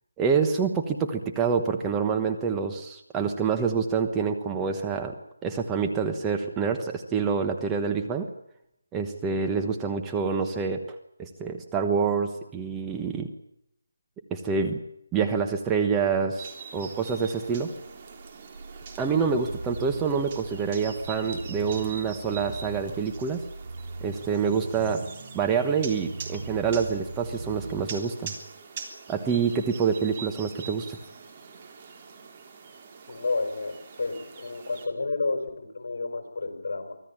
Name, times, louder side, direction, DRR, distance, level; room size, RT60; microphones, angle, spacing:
voice 1, 0.2-8.3 8.9-10.8 11.2-13.3 14.3-14.8 15.1-17.7 19.0-23.4 24.0-25.1 25.3-28.3 29.1-31.0, right 6 dB, 10° right, 4 dB, 1.2 m, -27 dB
sound 1, 16.4-34.9, right 5 dB, 30° right, 3.4 m, -44 dB
sound 2, 17.7-27.8, right 3 dB, 70° right, 7.8 m, -40 dB
voice 2, 33.1-37.0, left 3 dB, 55° left, 5 dB, 5.7 m, -31 dB
25.0 x 16.0 x 8.8 m, 0.80 s
figure-of-eight pair, 165°, 0 cm